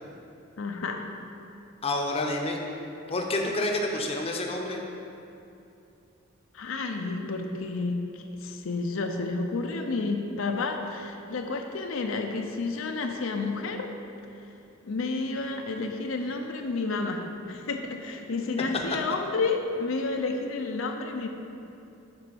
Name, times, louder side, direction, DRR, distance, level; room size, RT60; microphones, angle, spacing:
voice 1, 0.6-1.1 6.5-13.9 14.8-21.3, left 3 dB, 80° left, 4 dB, 0.6 m, -30 dB
voice 2, 1.8-2.6 3.1-4.8 18.7-18.8, left 2 dB, 30° left, 1 dB, 0.7 m, -28 dB
6.9 x 4.5 x 6.8 m, 2.7 s
head